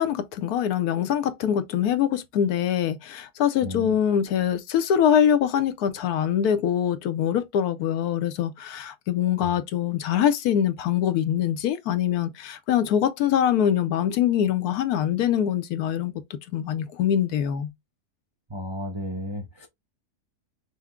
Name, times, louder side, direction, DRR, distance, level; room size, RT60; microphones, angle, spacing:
voice 1, 0.0-16.1 16.5-17.7, left 9 dB, 75° left, 1.1 m, -23 dB
voice 2, 3.6-3.9 9.4-9.5 18.5-19.7, left 1 dB, 40° right, 0.4 m, -33 dB
5.7 x 2.1 x 3.6 m
omnidirectional pair, 1.7 m